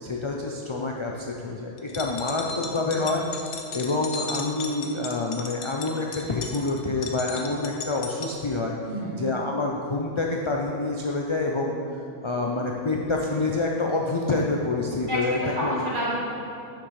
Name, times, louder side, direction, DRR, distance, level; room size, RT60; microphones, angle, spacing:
voice 1, 0.0-3.3 3.7-8.7 9.2-11.7 12.2-15.7, left 3 dB, 50° left, -1 dB, 0.3 m, -27 dB
sound 1, 1.8-8.3, left 4 dB, 75° left, 1.0 m, -36 dB
voice 2, 2.5-2.9 8.9-9.3 15.1-16.2, equal, 40° right, -8 dB, 2.3 m, -30 dB
9.6 x 6.3 x 3.2 m, 2.6 s
omnidirectional pair, 1.2 m